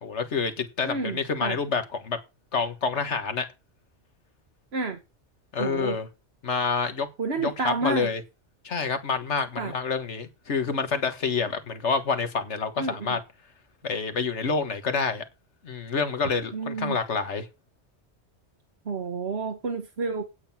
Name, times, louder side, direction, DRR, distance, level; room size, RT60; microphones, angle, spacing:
voice 1, 0.0-2.2 2.5-3.4 5.5-6.1 6.4-7.1 7.4-8.2 8.6-13.2 13.8-15.2 15.6-17.5, left 5 dB, 85° left, 1.8 m, -28 dB
voice 2, 0.8-1.6 4.7-5.0 5.6-6.0 7.2-8.1 9.6-9.7 12.8-13.2 16.5-17.0 18.8-20.2, right 4 dB, 65° right, 1.5 m, -30 dB
9.1 x 8.3 x 5.8 m
omnidirectional pair, 1.2 m